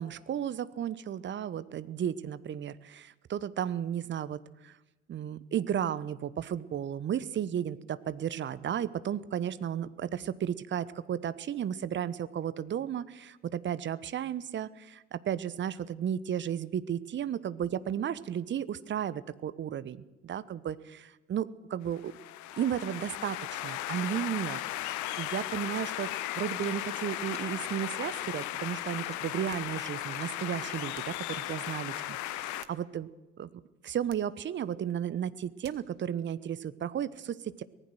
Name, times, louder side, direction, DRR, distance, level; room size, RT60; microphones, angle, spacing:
voice 1, 0.0-4.8 5.1-22.1 22.6-24.6 24.9-26.1 26.3-33.1 33.4-33.5 33.8-37.6, right 9 dB, 30° right, 16 dB, 1.0 m, -34 dB
sound 1, 21.9-32.6, left 14 dB, 50° left, 1.1 m, -36 dB
sound 2, 26.5-26.8 27.1-27.4 27.7-28.0 28.2-28.5 28.9-29.7 30.0-30.8, left 3 dB, 15° left, 2.8 m, -51 dB
sound 3, 29.5-29.8 30.9-31.3 32.3-33.2 34.1-34.4 35.6-36.0, right 14 dB, 60° right, 1.5 m, -55 dB
24.5 x 18.5 x 6.3 m, 1.0 s
figure-of-eight pair, 65°, 37 cm